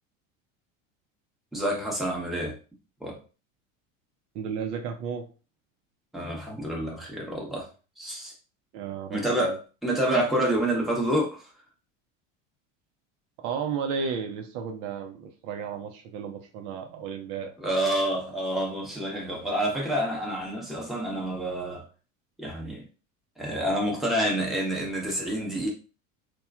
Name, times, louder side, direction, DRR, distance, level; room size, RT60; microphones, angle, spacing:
voice 1, 1.5-2.5 3.0-3.2 6.1-7.7 8.0-8.3 9.1-11.5 17.6-21.8 22.4-22.8 23.4-25.7, right 1 dB, ahead, 0.8 m, -28 dB
voice 2, 4.3-5.3 8.7-9.6 13.4-17.5, right 6 dB, 60° right, 0.6 m, -33 dB
2.9 x 2.3 x 2.3 m
supercardioid pair, 100°, 40 cm